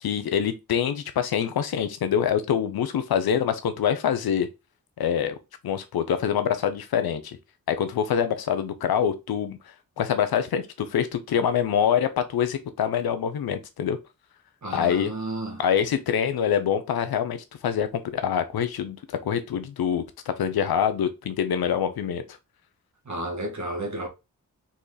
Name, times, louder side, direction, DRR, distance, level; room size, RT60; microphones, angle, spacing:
voice 1, 0.0-4.5 5.0-5.4 5.6-7.4 7.7-9.6 10.0-14.0 14.7-15.1 15.6-22.2, left 8 dB, 90° left, 0.7 m, -25 dB
voice 2, 14.6-15.6 23.1-24.1, right 1 dB, 50° right, 1.8 m, -32 dB
4.3 x 3.1 x 3.9 m
cardioid pair, 60°, 36 cm